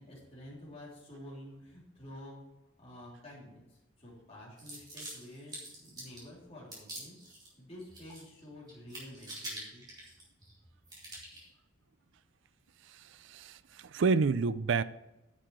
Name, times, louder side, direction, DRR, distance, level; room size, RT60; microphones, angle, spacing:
voice 1, 0.0-2.4 2.8-7.2 7.6-9.8, left 1 dB, 30° left, 3.4 m, -50 dB
sound 1, 4.6-6.3 6.7-7.5 7.8-8.4 8.7-10.5 10.9-11.5, right 1 dB, 20° right, 2.9 m, -45 dB
voice 2, 12.8-14.8, right 4 dB, 60° right, 0.4 m, -30 dB
9.9 x 6.6 x 4.7 m
head